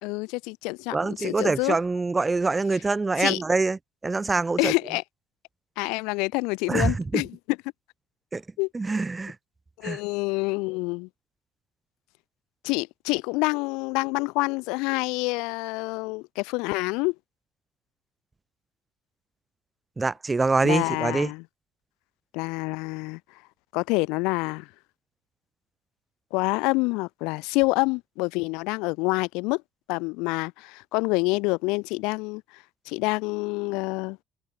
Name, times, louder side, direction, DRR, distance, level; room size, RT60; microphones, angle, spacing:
voice 1, 0.0-1.8 3.2-3.4 4.6-5.0 5.8-7.6 8.6-8.7 9.8-11.1 12.6-17.1 20.6-21.4 22.3-23.2 23.7-24.7 26.3-29.6 29.9-32.4 32.9-34.2, left 26 dB, 90° left, 0.9 m, -27 dB
voice 2, 0.9-4.7 6.7-7.2 8.3-8.4 8.7-9.4 9.8-10.0 20.0-21.3, right 3 dB, 15° right, 0.4 m, -25 dB
cardioid pair, 140°, 0 cm